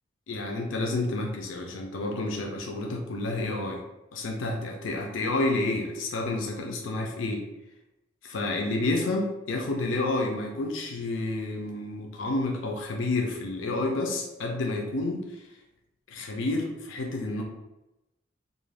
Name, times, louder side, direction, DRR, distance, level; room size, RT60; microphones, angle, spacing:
voice 1, 0.3-3.8 4.1-7.4 8.2-15.4 16.1-17.4, left 2 dB, 80° left, 1 dB, 0.4 m, -30 dB
2.5 x 2.2 x 3.2 m, 0.93 s
head